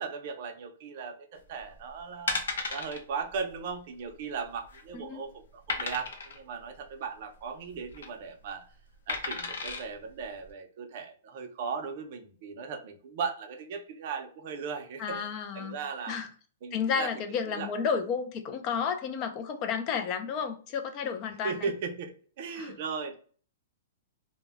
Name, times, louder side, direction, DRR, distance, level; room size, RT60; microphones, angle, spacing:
voice 1, 0.0-8.6 9.1-16.2 16.6-17.1 17.5-17.7 21.4-23.2, right 5 dB, 45° right, 0.5 m, -37 dB
sound 1, 1.6-1.8 2.3-3.0 3.3-3.5 3.8-3.9 4.4-4.9 5.7-6.4 7.7-8.1 9.1-9.8 10.4-10.5, left 4 dB, 80° left, 0.6 m, -34 dB
voice 2, 15.0-15.8 16.1-16.3 16.7-21.7 22.6-22.8, left 6 dB, 25° left, 0.3 m, -32 dB
2.1 x 2.1 x 3.3 m
hypercardioid pair, 165°, 0 cm